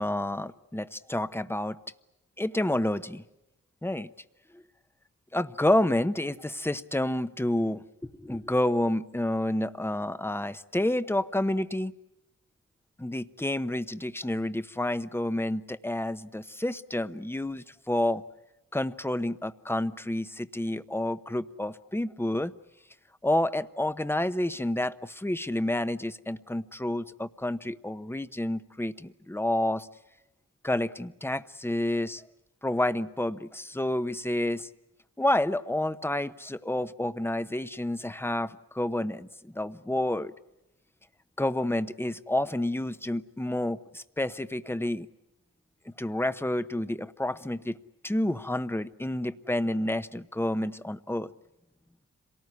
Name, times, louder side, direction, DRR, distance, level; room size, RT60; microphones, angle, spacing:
voice 1, 0.0-1.8 2.4-3.2 3.8-4.1 5.3-7.8 8.2-11.9 13.0-18.2 18.7-22.5 23.2-29.9 30.6-32.2 32.6-34.7 35.2-39.3 39.5-40.3 41.4-45.1 46.0-47.8 48.0-51.3, left 1 dB, 5° left, 12 dB, 0.9 m, -29 dB
26.5 x 19.0 x 9.7 m, 0.94 s
cardioid pair, 50°, 33 cm